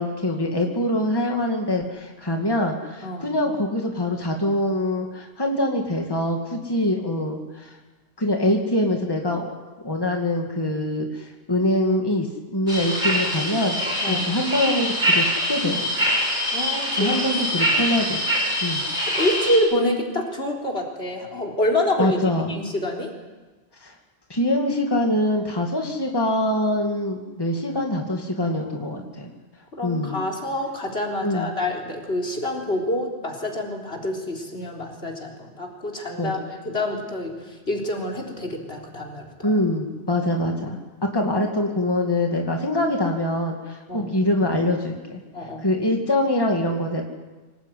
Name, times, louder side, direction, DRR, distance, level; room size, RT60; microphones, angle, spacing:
voice 1, 0.0-7.8 8.2-9.5 9.8-12.3 12.5-13.8 14.1-16.1 17.0-18.2 18.6-18.8 22.0-22.6 23.8-23.9 24.3-29.3 29.8-30.2 31.2-31.5 36.2-36.3 39.4-40.8 41.1-45.2 45.6-47.0, left 1 dB, 20° left, 1 dB, 2.4 m, -24 dB
voice 2, 3.0-3.4 14.0-14.3 16.5-17.2 18.7-22.2 22.5-23.1 28.6-29.1 29.7-39.6 43.9-44.1 45.3-45.7, left 1 dB, 65° left, 0 dB, 4.2 m, -27 dB
sound 1, 12.7-19.6, equal, 45° right, 7.1 m, -24 dB
25.5 x 18.5 x 9.3 m, 1.2 s
omnidirectional pair, 1.1 m